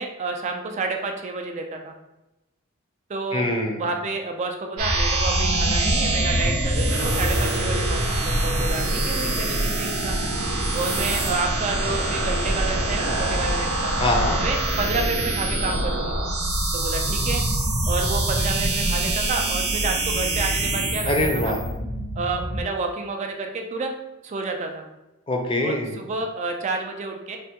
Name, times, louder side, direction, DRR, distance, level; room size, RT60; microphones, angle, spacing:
voice 1, 0.0-1.9 3.1-3.4 3.8-10.2 10.7-13.9 14.3-16.2 16.7-17.4 17.8-21.5 22.2-23.9 24.2-24.9 25.6-27.4, right 3 dB, 35° right, 4 dB, 0.3 m, -29 dB
voice 2, 3.3-3.8 14.0-14.4 21.1-21.6 25.3-26.0, left 1 dB, 25° left, 1 dB, 0.5 m, -23 dB
sound 1, 4.8-22.6, right 1 dB, 85° right, 0.6 m, -24 dB
3.2 x 2.2 x 2.8 m, 0.98 s
head